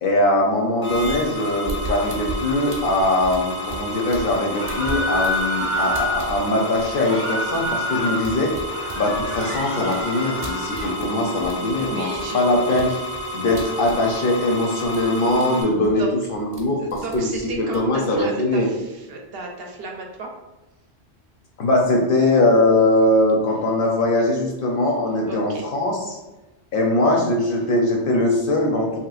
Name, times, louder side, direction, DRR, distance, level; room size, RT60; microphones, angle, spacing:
voice 1, 0.0-8.5 9.0-12.1 12.3-12.9 13.3-16.0 16.3-17.3 17.6-18.7 21.6-26.2 26.7-29.0, left 1 dB, 60° left, 0 dB, 0.6 m, -21 dB
sound 1, 0.8-15.6, left 1 dB, 85° left, 1.0 m, -31 dB
sound 2, 0.9-4.4 4.6-11.1 11.4-14.6 14.8-15.4 15.7-16.6 16.9-18.6, right 2 dB, 35° right, 0.8 m, -36 dB
sound 3, 4.5-6.2 6.9-8.2 8.7-11.0, equal, 20° left, 0.4 m, -27 dB
voice 2, 11.7-13.1 16.0-16.2 16.8-20.3 25.3-25.7, right 3 dB, 65° right, 0 dB, 0.7 m, -34 dB
3.2 x 2.9 x 2.3 m, 1.1 s
omnidirectional pair, 1.2 m